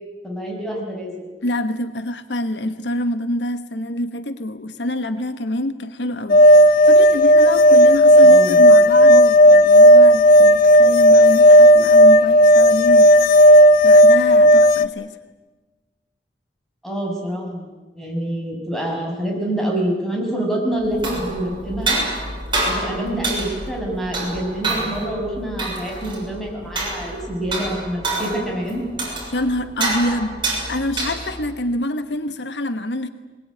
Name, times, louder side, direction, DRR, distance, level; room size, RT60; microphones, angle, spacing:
voice 1, 0.2-1.2 8.2-8.6 16.8-17.7 17.9-22.0 22.6-28.8, right 1 dB, ahead, -2 dB, 6.6 m, -26 dB
voice 2, 1.4-13.1 13.8-15.2 29.3-33.1, left 1 dB, 75° left, 10 dB, 1.2 m, -26 dB
sound 1, 6.3-14.9, equal, 55° left, 0.7 m, -10 dB
sound 2, 20.8-31.5, right 2 dB, 30° right, 7.0 m, -27 dB
21.5 x 21.0 x 9.8 m, 1.3 s
head